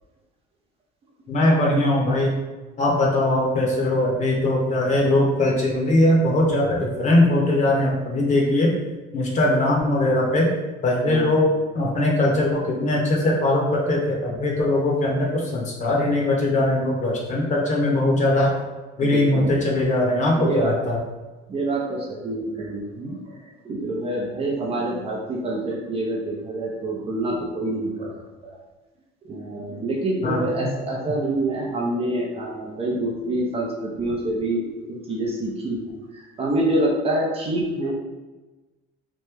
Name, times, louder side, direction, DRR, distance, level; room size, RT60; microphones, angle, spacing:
voice 1, 1.3-2.3 2.8-8.8 9.1-10.5 10.8-18.5 19.0-21.0 30.2-30.7, left 1 dB, 35° left, -2 dB, 0.8 m, -20 dB
voice 2, 19.0-19.6 20.3-20.7 21.5-23.2 23.6-28.1 28.4-28.6 29.2-37.9, right 1 dB, 30° right, -2 dB, 0.6 m, -26 dB
3.0 x 2.1 x 3.5 m, 1.2 s
cardioid pair, 130°, 20 cm